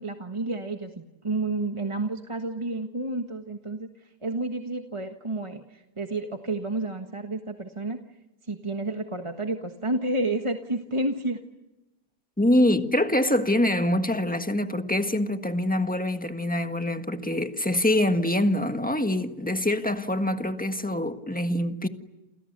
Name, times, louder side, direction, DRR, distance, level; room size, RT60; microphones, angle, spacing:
voice 1, 0.0-3.9 4.2-8.0 8.4-11.4, right 2 dB, 20° right, 1.4 m, -30 dB
voice 2, 12.4-21.9, left 1 dB, 5° left, 1.4 m, -25 dB
29.0 x 29.0 x 6.8 m
omnidirectional pair, 1.7 m